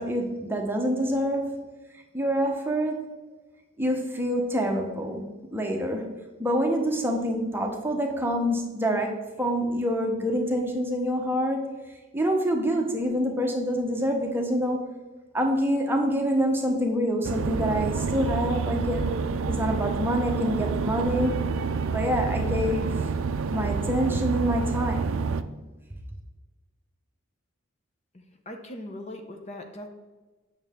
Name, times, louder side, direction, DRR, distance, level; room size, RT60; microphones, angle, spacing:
voice 1, 0.0-1.7 2.1-3.0 3.8-6.1 6.4-9.1 9.4-11.7 12.1-14.9 15.3-19.2 19.5-21.4 21.9-23.1 23.5-25.2, equal, 10° right, 2 dB, 0.9 m, -26 dB
sound 1, 17.2-25.4, right 5 dB, 70° right, 0.4 m, -28 dB
voice 2, 28.1-29.9, left 1 dB, 30° left, 5 dB, 0.7 m, -40 dB
8.9 x 6.4 x 3.6 m, 1.2 s
head